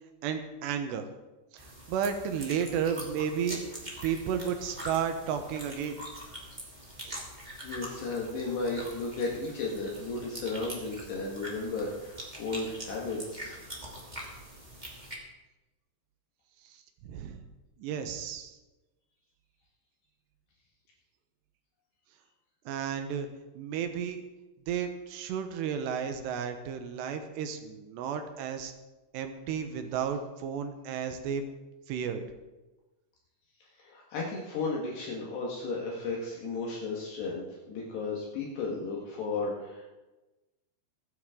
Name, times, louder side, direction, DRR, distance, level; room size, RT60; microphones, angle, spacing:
voice 1, 0.2-1.1 1.5-3.8 4.0-6.0 7.0-7.2 16.6-17.4 17.8-18.6 22.7-23.3 23.5-24.2 24.7-28.7 29.1-31.4 31.9-32.2, right 7 dB, 75° right, 7 dB, 2.8 m, -33 dB
sound 1, 1.6-15.1, equal, 20° right, 1.1 m, -44 dB
voice 2, 7.6-13.6 33.8-40.0, left 3 dB, 65° left, -3 dB, 3.7 m, -34 dB
22.0 x 9.7 x 3.8 m, 1.1 s
omnidirectional pair, 5.7 m